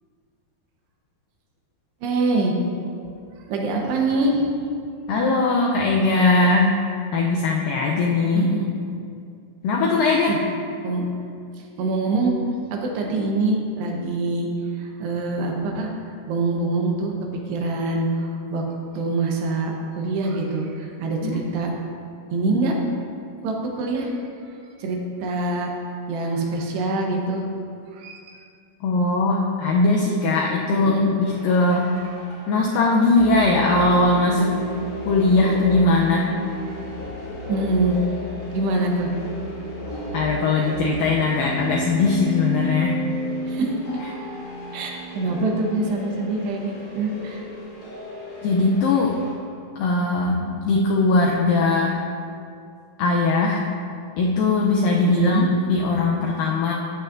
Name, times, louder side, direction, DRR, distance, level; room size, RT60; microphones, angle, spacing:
voice 1, 2.0-2.6 3.4-4.5 8.3-8.7 10.3-10.4 10.8-11.0 11.6-12.3 12.7-14.5 14.7-15.9 16.3-17.2 17.5-18.6 18.9-21.7 22.3-22.8 23.4-25.7 26.1-27.4 27.9-28.4 30.7-31.1 37.5-38.1 38.5-39.1 43.5-44.3 44.7-47.5 55.0-55.5, right 2 dB, 85° right, 0 dB, 3.2 m, -25 dB
voice 2, 5.1-6.8 7.1-8.5 9.6-10.4 21.2-21.4 28.8-30.9 31.2-31.9 32.5-34.5 35.1-36.3 40.1-43.0 48.4-49.2 49.8-52.0 53.0-53.6 54.2-56.7, left 3 dB, 90° left, -1 dB, 1.9 m, -20 dB
sound 1, 31.2-49.3, left 1 dB, 50° left, 1.2 m, -33 dB
13.5 x 8.7 x 2.6 m, 2.4 s
omnidirectional pair, 4.7 m